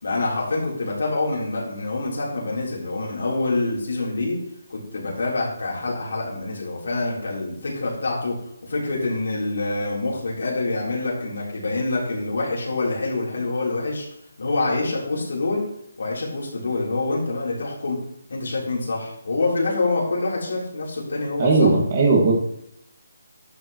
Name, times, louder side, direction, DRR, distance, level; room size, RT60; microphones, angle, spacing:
voice 1, 0.0-4.4 4.7-8.3 8.6-14.1 14.4-15.6 16.0-18.0 18.3-21.7, left 2 dB, 60° left, -4 dB, 3.4 m, -26 dB
voice 2, 21.4-22.3, right 3 dB, 25° right, 0 dB, 1.7 m, -17 dB
11.0 x 7.7 x 3.0 m, 0.74 s
hypercardioid pair, 175°, 0 cm